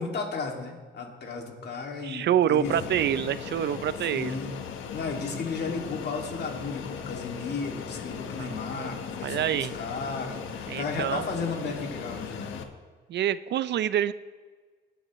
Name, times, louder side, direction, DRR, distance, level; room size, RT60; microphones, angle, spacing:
voice 1, 0.0-3.3 4.1-4.6 4.9-12.6, left 4 dB, 55° left, 2 dB, 2.3 m, -34 dB
voice 2, 2.0-4.4 8.4-8.9 9.2-9.7 10.7-11.2 13.1-14.1, right 10 dB, 60° right, 16 dB, 0.5 m, -27 dB
Fixed-wing aircraft airplane, 2.6-12.6, left 7 dB, 80° left, 1.2 m, -38 dB
19.0 x 10.0 x 3.1 m, 1.4 s
cardioid pair, 90°, 20 cm